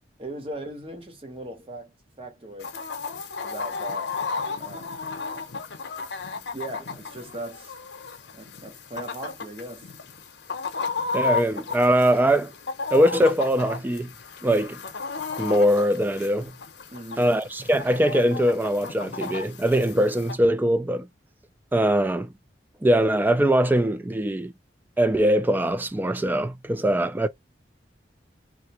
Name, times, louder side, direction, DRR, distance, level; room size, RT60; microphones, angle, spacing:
voice 1, 0.2-2.8 3.4-4.2 4.6-5.0 6.5-7.7 8.3-9.9 16.9-17.3, right 1 dB, 30° right, 1.0 m, -38 dB
Chicken rooster, 2.6-20.3, left 4 dB, 80° left, 0.7 m, -34 dB
voice 2, 11.1-12.5 12.9-14.1 14.4-14.8 15.4-16.5 17.2-21.1 21.7-22.3 22.8-24.5 25.0-27.3, right 1 dB, 10° right, 0.3 m, -22 dB
2.9 x 2.5 x 2.9 m
head